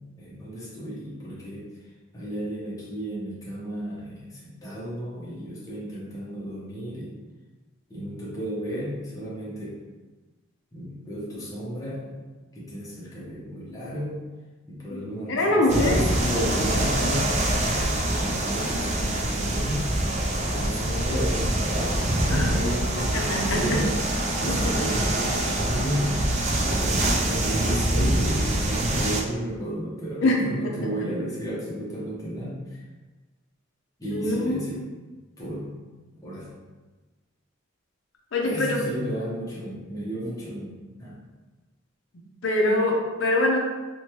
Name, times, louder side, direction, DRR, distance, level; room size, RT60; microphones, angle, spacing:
voice 1, 0.2-1.7 2.1-7.1 7.9-9.8 10.7-12.2 12.5-14.3 14.7-19.9 20.4-32.6 34.0-34.8 35.4-35.7 36.2-36.5 38.4-41.2, equal, 15° left, -8 dB, 0.7 m, -33 dB
voice 2, 15.3-16.1 22.3-22.5 23.1-23.8 24.5-25.0 25.8-25.9 30.2-30.7 34.1-34.9 38.3-38.8 42.4-43.6, left 1 dB, 65° left, 0 dB, 0.5 m, -24 dB
sound 1, 15.7-29.2, right 1 dB, 35° right, 0.3 m, -25 dB
3.0 x 2.1 x 2.9 m, 1.3 s
head